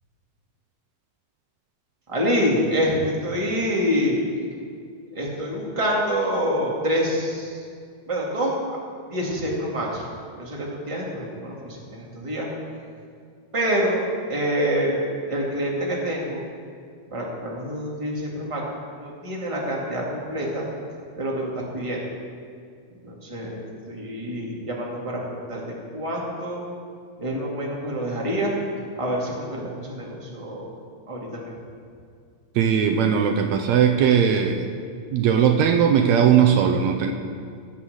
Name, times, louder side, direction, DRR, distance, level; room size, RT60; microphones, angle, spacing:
voice 1, 2.1-4.1 5.1-7.6 8.1-8.5 9.1-10.1 10.4-12.5 13.5-14.0 14.3-15.0 15.3-16.4 17.1-18.6 19.0-20.6 21.2-22.0 23.0-23.6 23.9-25.6 25.9-26.6 27.2-28.6 29.0-30.7 31.1-31.5, equal, 15° right, -3 dB, 1.7 m, -26 dB
voice 2, 32.6-34.7 35.1-37.1, right 8 dB, 80° right, 5 dB, 1.9 m, -19 dB
17.0 x 5.7 x 8.0 m, 2.2 s
omnidirectional pair, 3.3 m